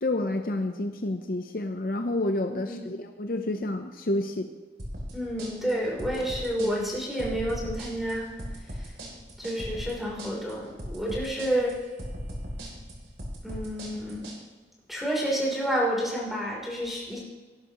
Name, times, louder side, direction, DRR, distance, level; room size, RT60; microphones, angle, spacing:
voice 1, 0.0-4.5 6.6-6.7, left 2 dB, 55° left, 6 dB, 0.7 m, -29 dB
voice 2, 2.5-2.8 5.1-8.3 8.8-8.9 9.4-11.7 13.4-14.3 14.9-17.2, equal, ahead, -4 dB, 3.3 m, -29 dB
sound 1, 4.8-14.4, equal, 75° right, 3.1 m, -38 dB
19.0 x 11.0 x 3.0 m, 1.3 s
head